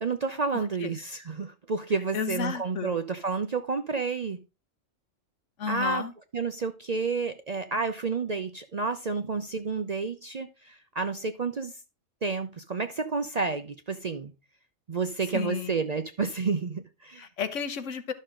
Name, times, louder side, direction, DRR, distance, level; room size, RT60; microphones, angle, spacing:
voice 1, 0.0-4.4 5.7-6.0 6.3-11.7 12.2-14.3 14.9-17.3, right 4 dB, 45° right, 0.6 m, -30 dB
voice 2, 0.5-0.9 2.1-3.0 5.6-6.1 15.3-15.8 17.2-18.1, left 6 dB, 75° left, 1.3 m, -33 dB
12.0 x 6.4 x 3.7 m
omnidirectional pair, 1.3 m